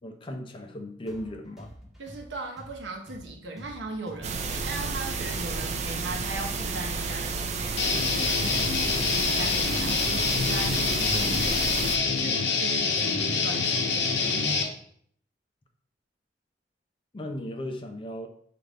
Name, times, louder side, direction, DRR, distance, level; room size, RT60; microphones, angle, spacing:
voice 1, 0.0-1.7 17.1-18.3, left 1 dB, 30° left, 5 dB, 0.5 m, -36 dB
sound 1, 1.1-9.0, equal, ahead, 0.8 m, -47 dB
voice 2, 2.0-8.6 8.9-10.0 10.4-11.8 12.2-14.3, right 2 dB, 70° right, 2 dB, 0.8 m, -38 dB
sound 2, 4.2-12.0, right 4 dB, 40° right, 0.4 m, -31 dB
Guitar, 7.8-14.6, left 4 dB, 70° left, 0.7 m, -26 dB
5.1 x 2.5 x 3.3 m, 0.62 s
head